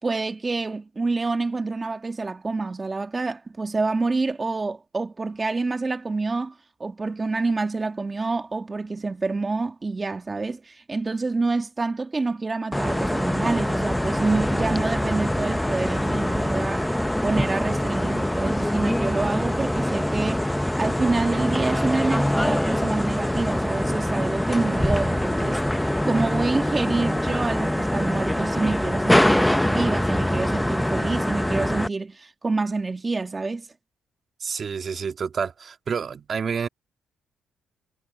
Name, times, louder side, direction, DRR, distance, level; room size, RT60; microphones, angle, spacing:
voice 1, 0.0-6.5 6.8-16.9 17.2-33.7, right 3 dB, 25° right, 2.1 m, -27 dB
sound 1, 12.7-31.9, left 1 dB, 5° left, 0.7 m, -24 dB
voice 2, 34.4-36.7, right 6 dB, 45° right, 1.9 m, -29 dB
cardioid pair, 90°, 0 cm